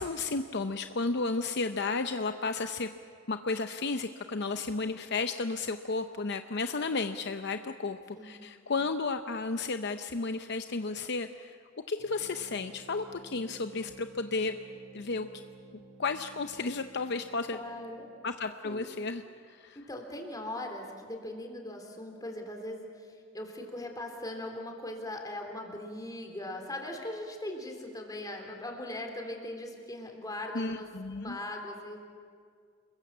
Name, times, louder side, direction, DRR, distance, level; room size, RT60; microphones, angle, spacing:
voice 1, 0.0-2.9 3.3-11.6 11.9-14.6 14.9-15.3 16.0-17.6 18.2-19.2 19.5-19.8 30.5-31.4, left 3 dB, 55° left, 8 dB, 0.7 m, -33 dB
sound 1, 12.0-18.6, right 2 dB, 50° right, 3.1 m, -54 dB
voice 2, 17.5-18.1 18.6-18.9 19.8-30.9 31.2-32.0, left 1 dB, 20° left, 3 dB, 3.4 m, -40 dB
28.5 x 22.0 x 7.4 m, 2.1 s
head